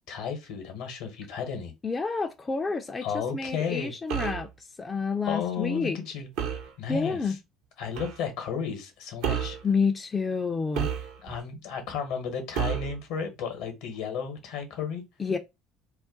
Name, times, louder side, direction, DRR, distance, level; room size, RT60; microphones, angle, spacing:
voice 1, 0.1-1.7 3.0-3.9 5.2-6.3 6.8-7.3 7.8-9.6 11.2-15.0, left 7 dB, 70° left, 0.8 m, -33 dB
voice 2, 1.8-3.1 3.3-6.0 6.9-7.4 9.3-10.9 15.2-15.4, left 4 dB, 25° left, 0.3 m, -29 dB
sound 1, 4.1-4.5 6.4-6.7 8.0-8.2 9.2-9.6 10.7-11.4 12.5-13.0, right 8 dB, 70° right, 0.5 m, -30 dB
2.4 x 2.2 x 3.6 m
hypercardioid pair, 65°, 0 cm